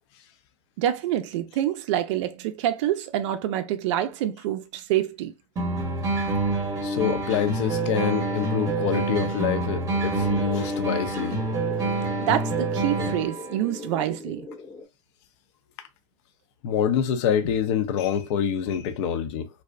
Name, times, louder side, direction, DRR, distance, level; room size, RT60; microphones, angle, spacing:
voice 1, 0.8-5.3 12.2-14.5, right 11 dB, 60° right, 0.4 m, -26 dB
sound 1, 5.6-13.5, right 3 dB, 20° right, 0.8 m, -27 dB
voice 2, 5.9-6.2 6.8-11.4 16.6-19.5, left 8 dB, 55° left, 0.5 m, -26 dB
sound 2, 7.5-14.8, left 3 dB, 15° left, 0.7 m, -40 dB
2.6 x 2.0 x 2.4 m
hypercardioid pair, 110°, 17 cm